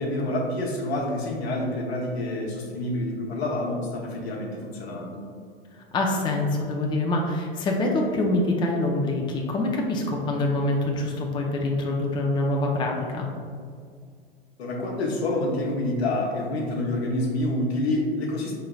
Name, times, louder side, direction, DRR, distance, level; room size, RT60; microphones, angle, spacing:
voice 1, 0.0-5.2 14.6-18.5, left 1 dB, 80° left, -1 dB, 1.0 m, -27 dB
voice 2, 5.9-13.3, left 2 dB, 15° left, 0 dB, 0.4 m, -25 dB
4.7 x 3.2 x 2.3 m, 2.1 s
hypercardioid pair, 100°, 31 cm